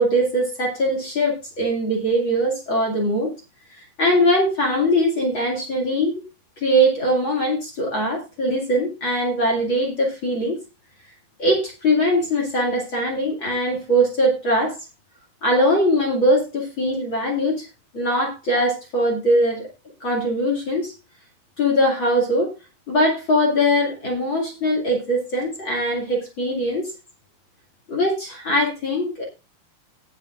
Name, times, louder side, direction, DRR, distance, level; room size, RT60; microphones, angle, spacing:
voice 1, 0.0-3.3 3.8-6.2 6.6-10.6 11.4-14.7 15.4-17.7 17.9-19.7 20.0-20.9 21.6-22.5 22.9-26.9 27.9-29.2, equal, 35° left, -1 dB, 2.4 m, -21 dB
18.5 x 6.9 x 2.5 m, 0.29 s
omnidirectional pair, 4.6 m